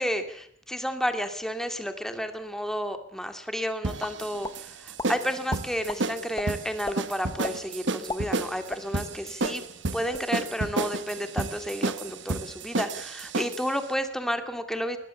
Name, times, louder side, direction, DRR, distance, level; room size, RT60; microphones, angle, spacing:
voice 1, 0.0-9.6 9.9-15.0, equal, ahead, 7 dB, 2.4 m, -31 dB
sound 1, 3.8-13.7, right 3 dB, 70° right, 1.3 m, -31 dB
sound 2, 4.0-4.6 5.0-5.1 5.5-6.0 6.4-6.5 6.8-7.0 7.4-7.6 7.9-9.2 9.4-9.6 9.9-10.3, left 2 dB, 20° left, 1.1 m, -35 dB
21.0 x 20.5 x 7.1 m, 0.66 s
head